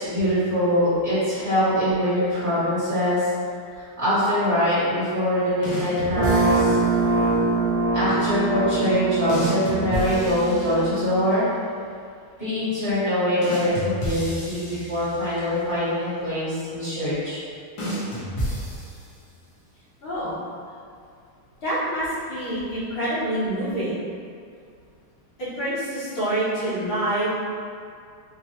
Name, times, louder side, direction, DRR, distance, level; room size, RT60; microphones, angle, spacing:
voice 1, 0.0-3.3 3.7-6.8 7.9-11.5 12.4-17.4, left 1 dB, 35° right, -14 dB, 1.4 m, -23 dB
sound 1, 5.6-7.0 9.3-11.3 13.4-15.6 17.8-19.4, right 1 dB, 60° left, 1.4 m, -31 dB
sound 2, 6.2-11.2, right 3 dB, 75° right, 1.4 m, -23 dB
voice 2, 20.0-20.4 21.6-24.0 25.4-27.3, right 1 dB, 75° left, -13 dB, 2.3 m, -26 dB
4.4 x 2.4 x 2.9 m, 2.3 s
omnidirectional pair, 2.3 m